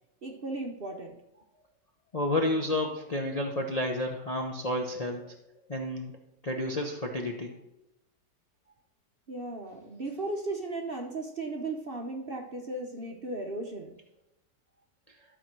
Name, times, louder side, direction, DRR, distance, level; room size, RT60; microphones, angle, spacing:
voice 1, 0.2-1.2 9.3-14.0, right 2 dB, 45° right, 2 dB, 0.8 m, -36 dB
voice 2, 2.1-5.3 5.7-6.1 6.4-7.5, left 1 dB, 35° left, 1 dB, 0.6 m, -30 dB
12.5 x 4.4 x 5.9 m, 0.90 s
omnidirectional pair, 1.9 m